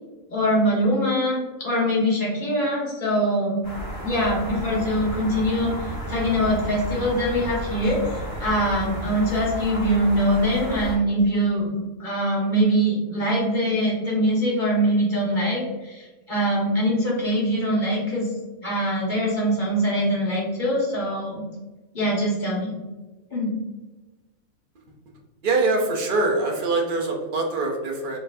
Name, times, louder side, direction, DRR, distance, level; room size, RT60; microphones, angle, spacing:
voice 1, 0.3-3.6 4.0-18.3 18.6-21.4 21.9-22.7 23.3-23.5, equal, 35° left, -5 dB, 1.5 m, -23 dB
sound 1, 3.6-11.0, equal, 15° right, 1.3 m, -32 dB
voice 2, 25.4-28.2, right 3 dB, 45° right, 1 dB, 0.8 m, -23 dB
4.3 x 3.2 x 2.6 m, 1.2 s
omnidirectional pair, 1.4 m